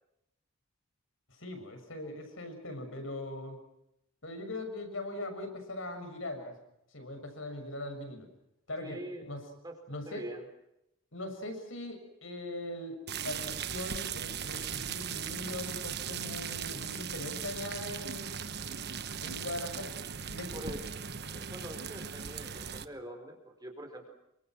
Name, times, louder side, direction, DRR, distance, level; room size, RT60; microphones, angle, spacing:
voice 1, 1.3-3.6 4.2-6.6 6.9-8.3 8.7-9.5 9.9-10.2 11.1-18.3 19.2-19.9 20.3-20.8, left 1 dB, 65° left, 6 dB, 6.9 m, -40 dB
voice 2, 8.8-9.2 9.6-10.5 20.5-24.1, right 1 dB, 20° right, 5 dB, 4.6 m, -45 dB
sound 1, 13.1-22.9, right 7 dB, 50° right, 1.2 m, -38 dB
28.5 x 25.0 x 6.2 m, 0.82 s
head